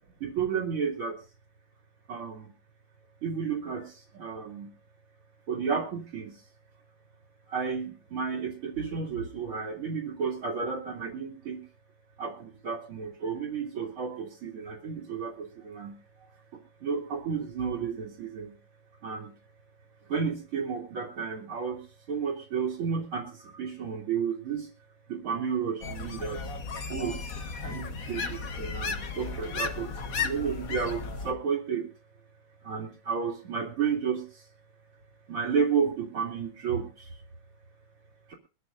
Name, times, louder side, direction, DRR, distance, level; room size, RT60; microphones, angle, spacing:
voice 1, 0.2-1.2 2.1-2.5 3.2-3.9 4.2-4.7 5.5-6.3 7.5-11.6 12.2-15.9 16.8-18.5 19.0-19.3 20.1-21.8 22.1-23.2 23.6-24.7 25.1-26.4 26.9-27.2 27.6-28.2 28.6-29.9 30.1-31.8 32.7-34.2 35.3-36.9, right 6 dB, 90° right, -6 dB, 3.6 m, -31 dB
sound 1, 25.8-31.3, left 4 dB, 45° left, 1.5 m, -35 dB
24.0 x 13.5 x 2.6 m, 0.35 s
omnidirectional pair, 2.3 m